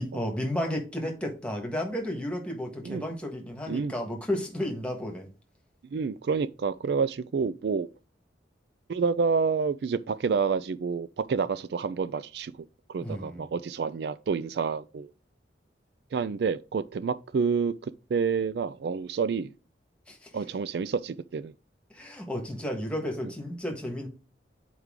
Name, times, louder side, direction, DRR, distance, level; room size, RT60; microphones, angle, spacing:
voice 1, 0.0-5.3 13.0-13.5 20.1-20.3 21.9-24.1, left 1 dB, 5° left, 1.4 m, -33 dB
voice 2, 5.9-7.9 8.9-15.1 16.1-17.7 18.1-19.5 20.3-21.5, right 5 dB, 65° right, 0.3 m, -28 dB
8.2 x 4.6 x 3.7 m
head